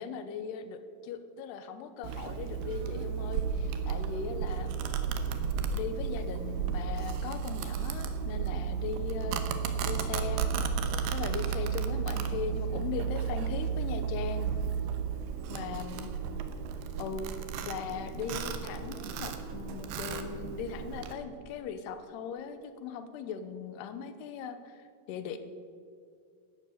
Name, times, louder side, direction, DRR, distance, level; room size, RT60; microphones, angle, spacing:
voice 1, 0.0-4.8 5.6-9.4 9.8-10.7 11.1-14.5 15.5-16.1 17.0-25.4, left 6 dB, 85° left, 10 dB, 3.0 m, -39 dB
Domestic sounds home sounds, 2.0-21.1, right 6 dB, 85° right, 3.0 m, -33 dB
12.0 x 11.5 x 8.3 m, 2.2 s
omnidirectional pair, 4.6 m